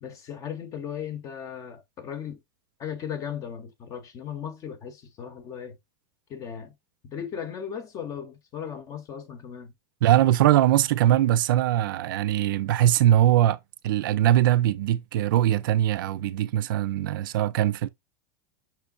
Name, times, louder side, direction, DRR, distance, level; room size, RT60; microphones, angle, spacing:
voice 1, 0.0-2.4 2.8-5.8 6.3-6.7 7.0-9.7, left 8 dB, 30° left, 0.8 m, -37 dB
voice 2, 10.0-13.6 13.8-17.9, right 12 dB, 75° right, 0.5 m, -21 dB
6.0 x 3.3 x 2.4 m
supercardioid pair, 150°, 11 cm